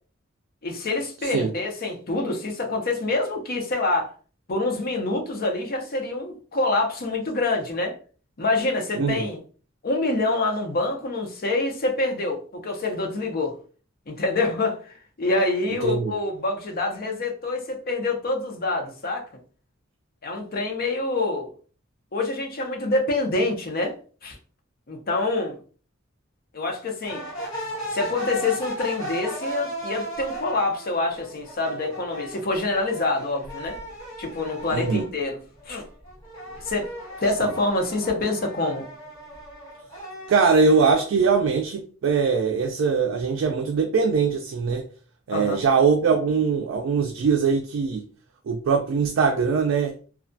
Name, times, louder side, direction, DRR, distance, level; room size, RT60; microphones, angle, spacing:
voice 1, 0.6-4.1 4.5-7.9 8.4-9.4 9.8-13.5 14.1-19.2 20.2-21.5 22.1-23.9 24.2-24.4 24.9-25.6 26.5-27.3 27.9-33.8 34.2-35.4 35.7-35.8 36.6-36.9 37.2-38.8 45.3-45.6, left 2 dB, 50° left, 0.6 m, -26 dB
voice 2, 9.0-9.3 15.8-16.1 34.7-35.0 40.3-44.8 45.3-48.0 48.5-49.9, right 5 dB, 70° right, 0.3 m, -21 dB
sound 1, 27.0-35.2 35.6-41.1, equal, 25° left, 1.4 m, -36 dB
2.3 x 2.2 x 2.5 m
head